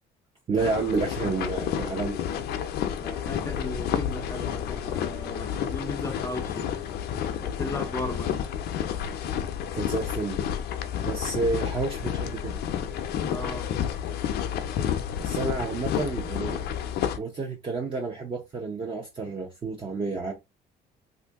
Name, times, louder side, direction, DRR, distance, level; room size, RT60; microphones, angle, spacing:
voice 1, 0.5-2.2 9.7-10.4 11.0-12.6 15.2-16.7 17.2-20.3, right 3 dB, 30° right, 0.7 m, -30 dB
sound 1, 0.6-17.2, left 9 dB, 70° left, 0.5 m, -30 dB
voice 2, 3.0-6.7 7.4-8.4 13.2-13.8, left 2 dB, 15° left, 0.5 m, -36 dB
2.7 x 2.6 x 3.4 m
cardioid pair, 110°, 17 cm